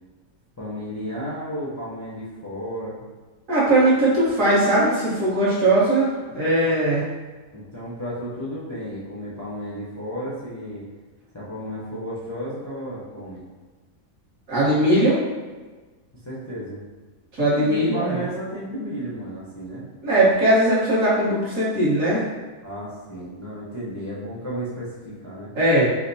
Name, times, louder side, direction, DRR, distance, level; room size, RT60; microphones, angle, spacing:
voice 1, 0.6-3.0 7.5-10.9 11.3-13.4 16.2-16.8 17.5-19.9 22.6-25.5, equal, 25° left, -9 dB, 0.3 m, -33 dB
voice 2, 3.5-7.1 14.5-15.2 17.3-18.2 20.0-22.2 25.5-25.9, right 1 dB, 55° right, -9 dB, 1.5 m, -19 dB
4.9 x 2.1 x 2.7 m, 1.3 s
omnidirectional pair, 1.6 m